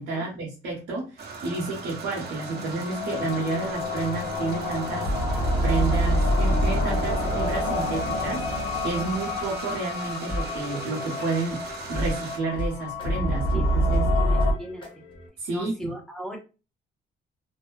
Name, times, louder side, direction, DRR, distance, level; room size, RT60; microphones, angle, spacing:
voice 1, 0.0-5.1 5.6-11.6 11.9-14.1 15.4-15.9, right 3 dB, 80° right, -3 dB, 0.9 m, -30 dB
sound 1, 1.2-12.4, right 4 dB, 55° right, 0.8 m, -39 dB
sound 2, 2.3-14.5, left 1 dB, 80° left, 0.7 m, -27 dB
sound 3, 3.1-5.8 6.7-9.7 9.9-10.0 10.3-15.3, left 1 dB, 25° left, 1.0 m, -39 dB
voice 2, 14.2-15.1 15.5-16.4, equal, ahead, 0 dB, 0.8 m, -38 dB
2.5 x 2.1 x 2.3 m, 0.31 s
cardioid pair, 90°, 20 cm